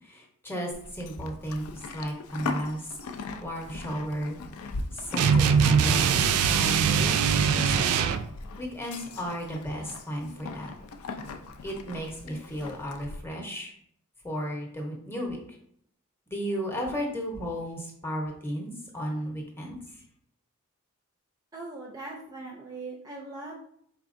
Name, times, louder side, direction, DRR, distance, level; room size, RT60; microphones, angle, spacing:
voice 1, 0.0-2.9 3.4-4.4 4.9-7.8 8.6-10.7 11.6-13.7 14.2-15.4 16.3-20.0, equal, 10° left, -1 dB, 0.8 m, -34 dB
Livestock farm animals working animals, 0.7-13.2, left 3 dB, 75° left, 0.4 m, -40 dB
sound 1, 5.2-8.3, right 7 dB, 75° right, 0.3 m, -22 dB
voice 2, 21.5-23.5, right 3 dB, 15° right, -2 dB, 0.5 m, -40 dB
4.5 x 3.5 x 2.5 m, 0.68 s
head